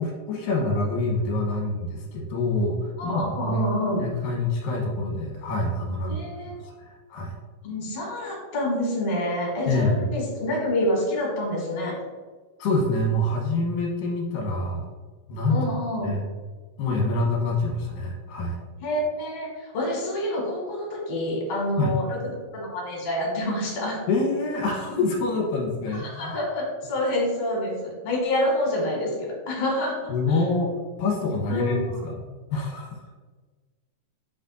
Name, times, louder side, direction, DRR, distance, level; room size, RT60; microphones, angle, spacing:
voice 1, 0.0-3.6 4.0-6.2 6.5-7.3 9.7-10.1 12.6-14.9 15.3-15.7 16.0-16.3 16.8-18.6 21.8-21.9 24.1-26.3 30.1-30.7 31.0-32.2 32.5-33.2, left 2 dB, 70° left, -1 dB, 2.6 m, -26 dB
voice 2, 3.0-4.1 6.1-6.6 7.6-12.0 15.5-16.2 18.8-24.0 26.0-30.1 31.5-32.0, left 1 dB, 50° left, -3 dB, 2.7 m, -27 dB
8.0 x 5.2 x 2.6 m, 1.4 s
omnidirectional pair, 4.5 m